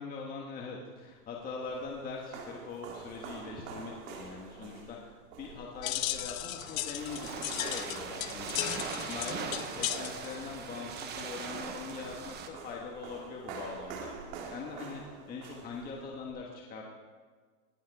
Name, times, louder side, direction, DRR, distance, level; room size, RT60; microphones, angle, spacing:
voice 1, 0.0-16.9, left 4 dB, 20° left, -2 dB, 1.5 m, -42 dB
sound 1, 1.3-16.3, right 5 dB, 60° right, 2.8 m, -47 dB
sound 2, 5.8-11.6, left 14 dB, 60° left, 0.9 m, -37 dB
sound 3, 7.0-12.5, right 6 dB, 20° right, 1.0 m, -40 dB
19.0 x 9.5 x 4.8 m, 1.5 s
supercardioid pair, 155°, 47 cm